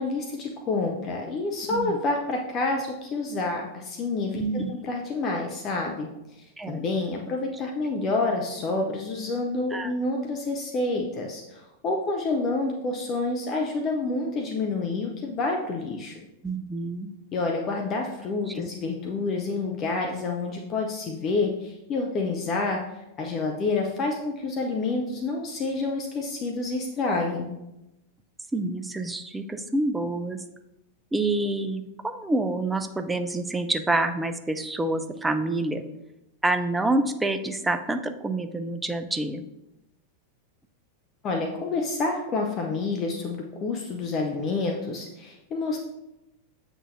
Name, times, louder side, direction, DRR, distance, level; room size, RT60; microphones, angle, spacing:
voice 1, 0.0-6.1 6.4-16.2 17.3-27.5 41.2-45.8, left 3 dB, 30° left, 1 dB, 0.7 m, -28 dB
voice 2, 4.3-4.7 6.6-6.8 9.7-9.9 16.4-17.1 18.5-18.7 28.5-30.4 31.1-35.8 36.4-39.4, right 2 dB, 10° right, 8 dB, 0.5 m, -27 dB
7.7 x 6.1 x 2.6 m, 0.91 s
figure-of-eight pair, 90°, 0 cm